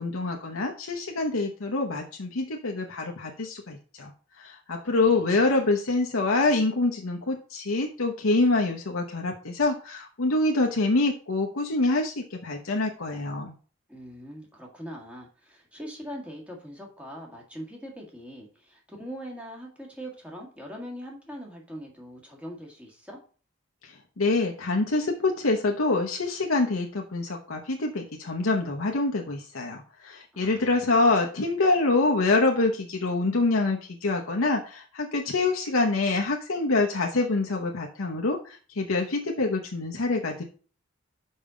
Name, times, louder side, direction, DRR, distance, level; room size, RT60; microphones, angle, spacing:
voice 1, 0.0-4.1 4.4-13.5 24.2-40.4, left 3 dB, 90° left, 1 dB, 0.9 m, -26 dB
voice 2, 4.9-5.4 13.9-23.2 30.3-31.1, equal, 5° right, -1 dB, 1.8 m, -42 dB
5.5 x 5.4 x 5.0 m, 0.39 s
head